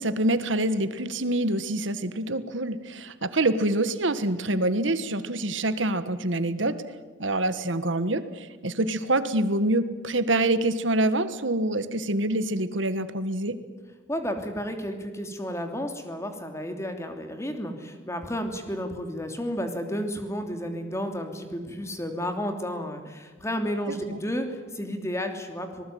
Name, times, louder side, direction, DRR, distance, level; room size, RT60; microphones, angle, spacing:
voice 1, 0.0-6.8 7.2-13.6 24.1-24.2, right 1 dB, 75° right, 12 dB, 1.6 m, -26 dB
voice 2, 14.1-25.8, equal, 15° left, 5 dB, 2.9 m, -32 dB
26.0 x 19.5 x 9.4 m, 1.4 s
head